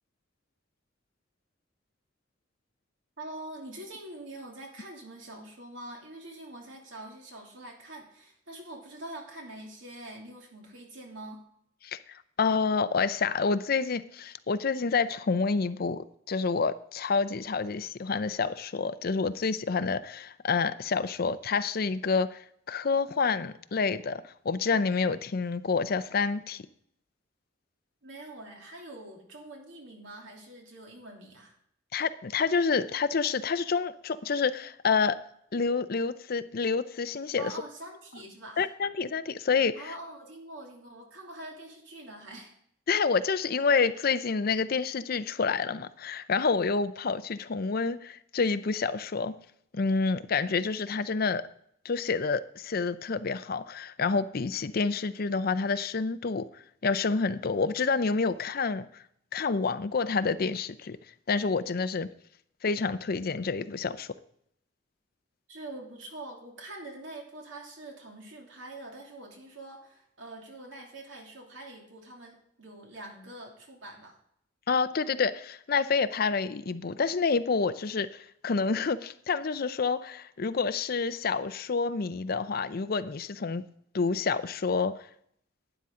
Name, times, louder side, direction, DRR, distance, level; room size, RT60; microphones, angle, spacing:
voice 1, 3.2-11.4 28.0-31.6 37.4-38.7 39.7-42.5 65.5-74.2, right 1 dB, 80° right, 2.9 m, -44 dB
voice 2, 11.8-26.6 31.9-35.2 35.5-37.5 38.6-39.9 42.9-49.4 49.7-51.5 51.8-59.0 59.3-61.0 61.3-62.1 62.6-64.1 74.7-83.6 83.9-85.1, left 4 dB, 50° left, 0.5 m, -28 dB
12.0 x 9.6 x 3.7 m
head